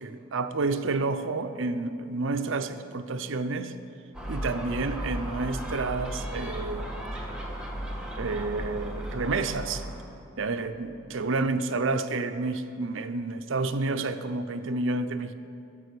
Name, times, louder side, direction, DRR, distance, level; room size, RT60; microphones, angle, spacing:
voice 1, 0.0-3.7 4.3-7.2 7.8-7.9 8.2-9.9 10.4-15.3, right 3 dB, 70° right, 9 dB, 0.6 m, -30 dB
Gull seagull, 4.1-10.0, equal, 5° right, 1.3 m, -35 dB
12.5 x 7.9 x 6.7 m, 2.7 s
head